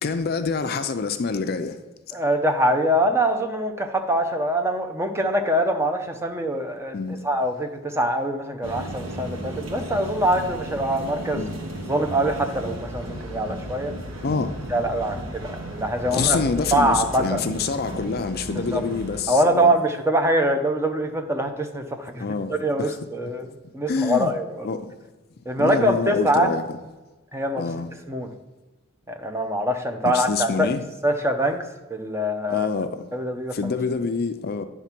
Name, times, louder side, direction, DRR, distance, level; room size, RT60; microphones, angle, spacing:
voice 1, 0.0-1.8 6.9-7.2 11.3-11.5 14.2-14.6 16.1-19.7 22.2-23.0 23.9-24.3 24.6-24.9 25.6-26.8 27.6-27.9 30.1-30.8 32.5-33.1 33.5-34.6, left 4 dB, 50° left, 0.4 m, -26 dB
voice 2, 2.1-7.0 7.2-11.4 11.9-13.9 14.7-16.4 16.7-17.4 18.5-18.8 19.3-22.2 22.5-24.7 25.5-26.5 27.3-27.6 28.1-28.3 29.1-30.7 31.0-31.6 31.9-32.7 33.1-33.8, right 1 dB, 15° right, 0.7 m, -24 dB
sound 1, 8.6-19.2, right 1 dB, 90° right, 1.5 m, -34 dB
9.4 x 3.6 x 5.9 m
head